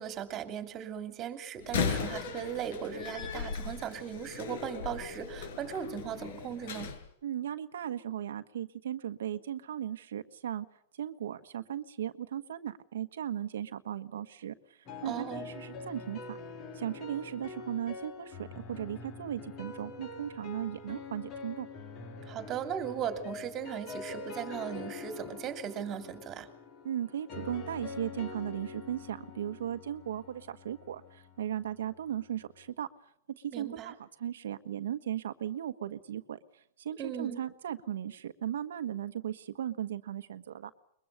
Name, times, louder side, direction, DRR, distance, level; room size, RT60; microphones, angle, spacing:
voice 1, 0.0-6.9 15.0-15.4 22.3-26.5 33.5-33.9 37.0-37.4, right 8 dB, 25° right, 8 dB, 2.9 m, -38 dB
Slam, 1.6-7.0, left 6 dB, 60° left, 6.1 m, -37 dB
voice 2, 7.2-10.7 10.9-16.4 16.7-21.7 26.8-32.9 33.3-40.7, right 10 dB, 80° right, 8 dB, 1.4 m, -37 dB
sound 1, 14.9-32.7, left 3 dB, 30° left, 3.7 m, -45 dB
23.0 x 22.5 x 6.7 m, 0.75 s
hypercardioid pair, 150°, 0 cm